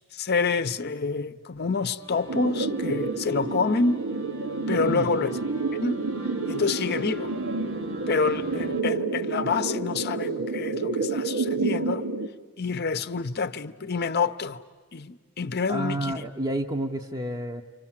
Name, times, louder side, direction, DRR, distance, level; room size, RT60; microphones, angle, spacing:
voice 1, 0.1-4.1 4.7-5.4 5.8-6.0 6.5-7.3 8.1-12.1 12.6-14.6 14.9-16.3, left 4 dB, 50° left, 0.8 m, -27 dB
sound 1, 2.0-8.8, right 2 dB, 65° right, 1.6 m, -43 dB
sound 2, 2.3-12.3, right 3 dB, 85° right, 1.3 m, -29 dB
voice 2, 15.7-17.6, right 1 dB, 20° right, 0.8 m, -30 dB
29.5 x 25.5 x 7.4 m
head